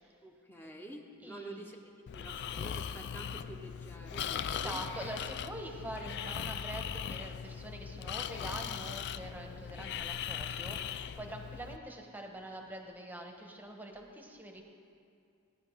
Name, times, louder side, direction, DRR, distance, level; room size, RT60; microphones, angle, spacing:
voice 1, 0.2-1.8 2.1-4.8, right 1 dB, 10° left, 1 dB, 0.9 m, -48 dB
voice 2, 1.2-1.7 4.3-14.6, right 1 dB, 10° right, 2 dB, 1.1 m, -44 dB
Breathing, 2.1-11.8, left 8 dB, 50° left, 0.3 m, -39 dB
17.0 x 10.5 x 3.7 m, 2.4 s
head